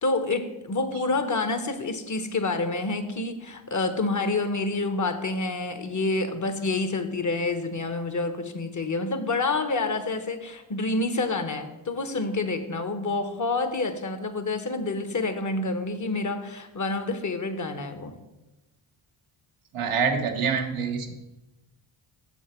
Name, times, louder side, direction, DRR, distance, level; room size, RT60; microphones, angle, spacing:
voice 1, 0.0-18.2, left 3 dB, 35° left, 9 dB, 1.1 m, -28 dB
voice 2, 19.7-21.1, right 6 dB, 85° right, 3 dB, 1.1 m, -26 dB
7.2 x 6.6 x 4.4 m, 1.0 s
supercardioid pair, 50°, 50 cm